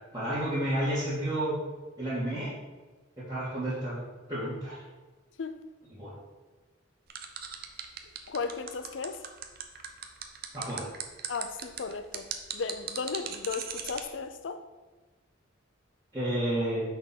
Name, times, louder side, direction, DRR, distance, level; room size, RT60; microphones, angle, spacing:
voice 1, 0.1-1.6 2.0-2.5 3.2-4.0 4.3-4.8 5.9-6.1 10.5-10.9 16.1-16.8, right 1 dB, 20° right, -12 dB, 1.9 m, -31 dB
sound 1, 7.1-14.0, right 8 dB, 50° right, 0.6 m, -37 dB
voice 2, 8.3-9.2 11.3-12.3 12.5-14.6, left 5 dB, 75° left, 10 dB, 0.5 m, -35 dB
6.4 x 3.7 x 5.8 m, 1.2 s
head